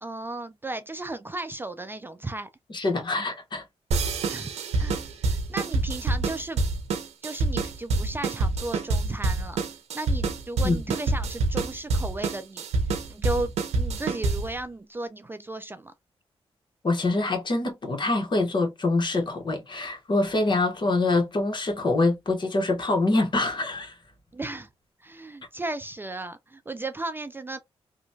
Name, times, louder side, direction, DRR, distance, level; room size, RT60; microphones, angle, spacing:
voice 1, 0.0-2.5 4.3-4.5 4.8-6.6 7.2-9.6 9.9-12.6 13.1-15.9 24.3-24.7 25.0-27.6, right 2 dB, 20° right, 0.3 m, -35 dB
voice 2, 2.7-3.6 10.6-10.8 16.8-23.9, left 2 dB, 45° left, 1.1 m, -25 dB
sound 1, 3.9-14.6, right 3 dB, 90° right, 0.6 m, -27 dB
2.9 x 2.2 x 2.6 m
cardioid pair, 85°, 11 cm